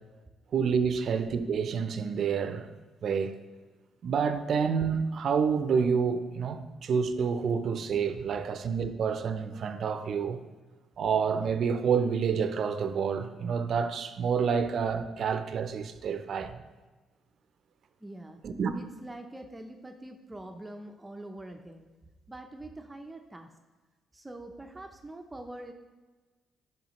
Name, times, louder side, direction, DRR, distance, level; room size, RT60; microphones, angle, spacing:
voice 1, 0.5-2.7 3.0-3.4 4.0-10.4 11.0-16.6 18.4-18.7, right 6 dB, 60° right, 0.5 m, -28 dB
voice 2, 18.0-18.4 18.7-21.9 22.3-23.5 24.1-25.7, right 1 dB, 15° right, 0.6 m, -44 dB
9.2 x 5.5 x 3.0 m
cardioid pair, 90°, 0 cm